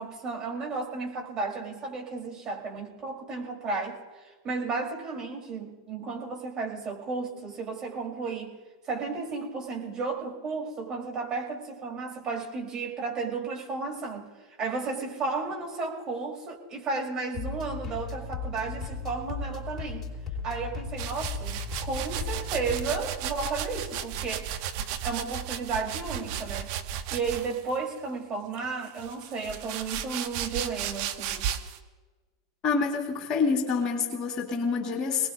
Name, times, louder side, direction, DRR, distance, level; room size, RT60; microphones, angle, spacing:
voice 1, 0.0-4.0 4.2-8.6 8.9-14.3 14.6-20.0 20.4-24.5 25.0-26.7 27.1-31.5, right 4 dB, 30° right, -1 dB, 4.0 m, -33 dB
sound 1, 17.3-23.0, left 4 dB, 20° left, 4.2 m, -36 dB
sound 2, 21.0-27.8 28.5-31.8, right 9 dB, 50° right, 1.1 m, -34 dB
voice 2, 32.6-35.3, left 5 dB, 35° left, 3 dB, 1.9 m, -27 dB
26.5 x 19.5 x 2.7 m, 1.3 s
figure-of-eight pair, 90°, 2 cm